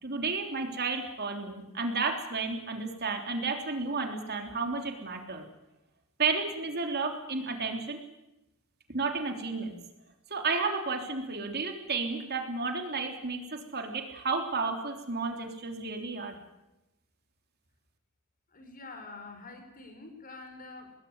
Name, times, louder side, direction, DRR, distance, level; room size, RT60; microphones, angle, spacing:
voice 1, 0.0-5.4 6.2-8.0 8.9-9.8 10.3-16.4, right 4 dB, 45° right, 4 dB, 3.5 m, -32 dB
voice 2, 18.5-20.9, left 3 dB, 40° left, 6 dB, 4.8 m, -46 dB
26.0 x 20.0 x 9.7 m, 0.95 s
head